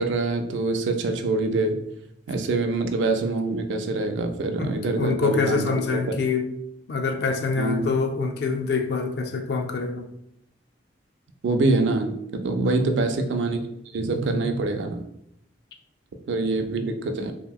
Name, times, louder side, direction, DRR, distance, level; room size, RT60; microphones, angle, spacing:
voice 1, 0.0-1.8 2.3-5.7 5.9-6.0 7.6-7.9 11.4-13.6 13.9-15.0 16.3-17.3, right 3 dB, 70° right, 6 dB, 0.4 m, -25 dB
voice 2, 4.9-6.5 6.9-10.1 12.6-12.9, left 4 dB, 55° left, 4 dB, 0.4 m, -25 dB
2.9 x 2.8 x 2.3 m, 0.78 s
head